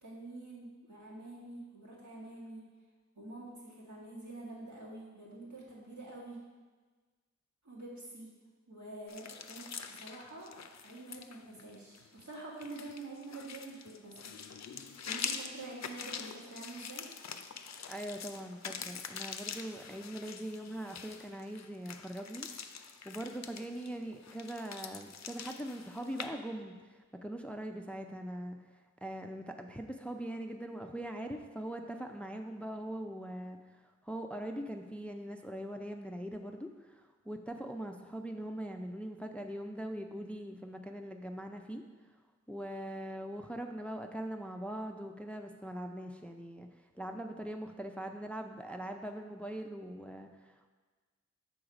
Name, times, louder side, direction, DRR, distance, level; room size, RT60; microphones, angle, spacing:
voice 1, 0.0-2.6 3.2-6.4 7.6-8.3 8.7-10.5 10.8-14.2 15.1-17.1, right 2 dB, 80° right, -6 dB, 2.0 m, -47 dB
sound 1, 9.1-26.3, left 6 dB, 65° left, 0.4 m, -45 dB
voice 2, 17.9-22.5 23.0-28.6 29.0-33.6 34.0-41.8 42.5-46.7 46.9-50.7, right 1 dB, 5° left, 5 dB, 0.4 m, -41 dB
6.5 x 3.9 x 4.9 m, 1.4 s
wide cardioid pair, 65°, 29 cm